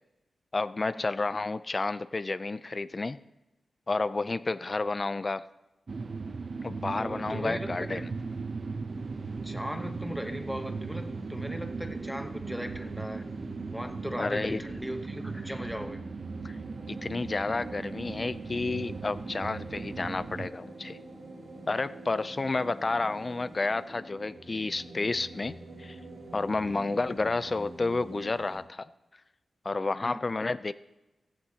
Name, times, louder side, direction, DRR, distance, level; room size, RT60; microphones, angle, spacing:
voice 1, 0.5-3.2 3.9-5.4 6.6-8.1 14.2-14.6 16.4-16.6 16.9-21.0 21.7-26.0 26.3-28.9 29.6-30.7, left 3 dB, 30° left, 14 dB, 0.4 m, -31 dB
sound 1, 5.9-20.5, right 4 dB, 45° right, 0.7 m, -38 dB
voice 2, 7.0-8.0 9.4-13.3 13.7-16.0 26.7-26.9 30.0-30.2, equal, ahead, 6 dB, 0.9 m, -38 dB
sound 2, 8.9-28.6, right 2 dB, 75° right, 5.8 m, -46 dB
16.0 x 15.0 x 2.9 m, 1.0 s
wide cardioid pair, 125°, 0 cm